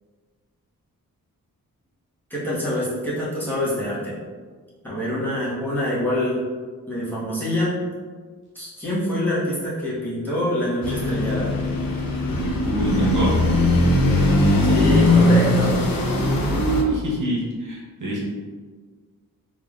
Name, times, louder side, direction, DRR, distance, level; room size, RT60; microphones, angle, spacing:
voice 1, 2.3-4.2 4.8-6.4 6.9-7.8 8.5-11.5 14.6-15.8, left 1 dB, 5° left, -10 dB, 1.4 m, -25 dB
sound 1, 10.8-16.8, left 1 dB, 75° left, 0.6 m, -19 dB
voice 2, 12.6-13.3 16.5-18.2, right 2 dB, 60° right, -5 dB, 0.9 m, -25 dB
3.8 x 3.3 x 2.5 m, 1.5 s
wide cardioid pair, 105°, 35 cm